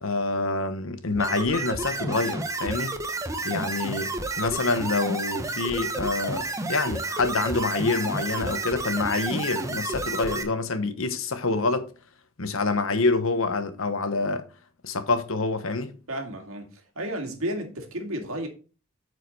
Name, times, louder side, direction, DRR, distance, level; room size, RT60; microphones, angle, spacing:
voice 1, 0.0-2.9 3.4-11.9 12.4-14.5 14.8-15.9, left 3 dB, 70° left, 1.1 m, -26 dB
sound 1, 1.2-10.4, right 2 dB, 15° right, 0.8 m, -31 dB
voice 2, 16.1-16.7 17.0-18.5, right 1 dB, 80° right, 2.1 m, -32 dB
8.9 x 4.9 x 4.1 m
head